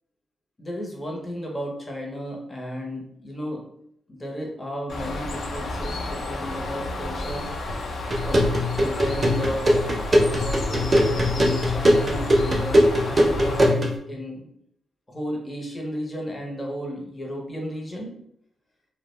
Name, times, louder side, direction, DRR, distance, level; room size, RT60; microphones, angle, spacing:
voice 1, 0.6-3.6 4.1-7.5 8.2-8.5 8.8-14.5 15.1-18.1, equal, 20° left, -1 dB, 0.6 m, -33 dB
Bird, 4.9-13.7, left 2 dB, 60° left, 0.4 m, -31 dB
sound 1, 8.1-14.0, equal, 25° right, 0.5 m, -21 dB
2.3 x 2.0 x 3.0 m, 0.73 s
wide cardioid pair, 135°, 0 cm